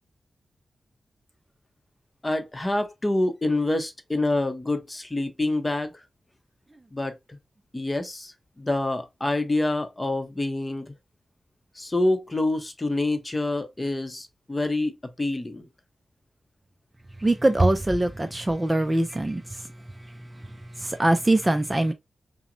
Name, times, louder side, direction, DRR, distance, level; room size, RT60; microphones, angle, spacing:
voice 1, 2.2-5.9 6.9-7.4 7.7-10.9 11.8-15.6, left 2 dB, 20° left, 0.8 m, -27 dB
voice 2, 17.2-19.6 20.8-21.9, right 1 dB, 20° right, 0.4 m, -22 dB
5.7 x 2.1 x 2.6 m
wide cardioid pair, 90°, 0 cm